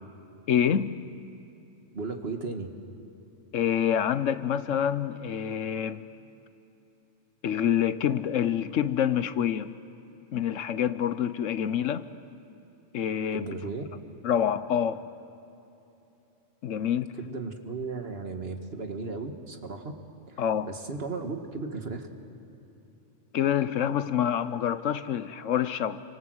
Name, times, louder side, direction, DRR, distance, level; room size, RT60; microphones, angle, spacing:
voice 1, 0.5-1.0 3.5-6.0 7.4-9.7 10.3-12.1 12.9-13.5 14.2-15.0 16.6-17.1 20.4-20.7 23.3-26.0, left 9 dB, 80° left, 1.2 m, -27 dB
voice 2, 1.9-2.7 13.3-13.8 17.2-19.9 20.3-22.1, right 4 dB, 50° right, 2.0 m, -35 dB
29.0 x 25.5 x 7.9 m
omnidirectional pair, 1.3 m